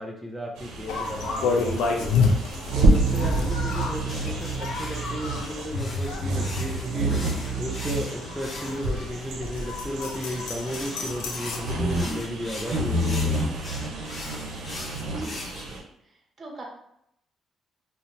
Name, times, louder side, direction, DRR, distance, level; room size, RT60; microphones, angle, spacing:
voice 1, 0.0-2.3 2.7-13.7, equal, 5° right, -1 dB, 0.4 m, -34 dB
sound 1, 0.6-15.8, right 2 dB, 90° right, 0.5 m, -28 dB
sound 2, 0.9-11.6, left 4 dB, 90° left, 0.4 m, -30 dB
sound 3, 3.5-9.3 10.1-15.6, left 2 dB, 40° left, 0.6 m, -41 dB
voice 2, 15.0-15.8 16.4-16.7, right 2 dB, 40° right, 0 dB, 0.7 m, -42 dB
2.7 x 2.0 x 3.1 m, 0.76 s
cardioid pair, 90°, 0 cm